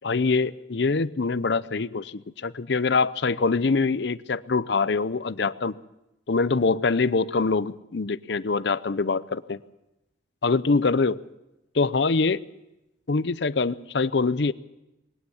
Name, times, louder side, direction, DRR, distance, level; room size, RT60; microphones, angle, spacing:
voice 1, 0.0-5.8 6.3-9.6 10.4-11.2 11.7-12.4 13.1-14.5, left 4 dB, 65° left, 17 dB, 0.6 m, -24 dB
20.5 x 17.5 x 7.2 m, 0.94 s
head